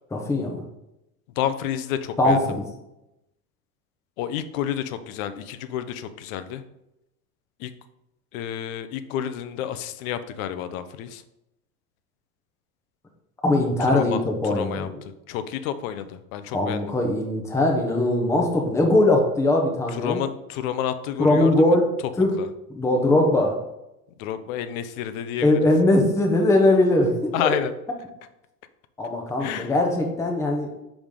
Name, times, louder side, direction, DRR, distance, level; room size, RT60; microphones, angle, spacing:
voice 1, 0.1-0.6 2.2-2.6 13.4-15.0 16.5-20.2 21.2-21.9 22.2-22.3 22.7-23.5 25.4-27.5 29.0-30.7, left 1 dB, 5° left, 1 dB, 0.8 m, -20 dB
voice 2, 1.4-2.4 4.2-6.6 7.6-7.7 8.3-11.2 13.8-16.9 19.9-21.8 22.4-22.5 24.2-25.6 27.3-27.7 29.4-29.7, left 10 dB, 60° left, 12 dB, 0.7 m, -30 dB
5.1 x 5.0 x 3.7 m, 0.89 s
supercardioid pair, 115°, 46 cm